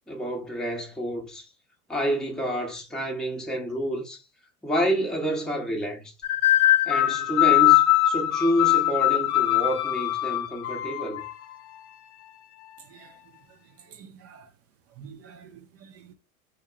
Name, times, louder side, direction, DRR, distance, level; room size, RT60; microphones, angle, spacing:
voice 1, 0.1-1.5 1.9-4.2 4.6-6.1 6.9-11.2, equal, ahead, 0.8 m, -28 dB
sound 1, 6.2-11.3, left 14 dB, 35° left, 0.5 m, -21 dB
voice 2, 13.9-14.5 15.0-16.1, right 7 dB, 35° right, 0.6 m, -48 dB
3.5 x 2.8 x 3.2 m
hypercardioid pair, 85°, 45 cm